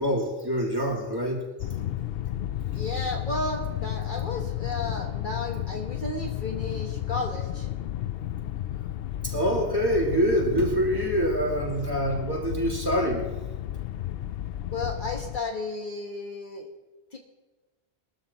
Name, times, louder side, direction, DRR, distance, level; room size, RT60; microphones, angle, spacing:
voice 1, 0.0-1.4 9.2-13.3, equal, 20° right, -4 dB, 3.3 m, -25 dB
sound 1, 1.6-15.4, left 12 dB, 65° left, 0.7 m, -32 dB
voice 2, 2.7-7.7 14.7-16.7 17.1-17.2, left 2 dB, 50° left, 1 dB, 1.3 m, -33 dB
22.5 x 13.0 x 3.0 m, 1.1 s
omnidirectional pair, 1.1 m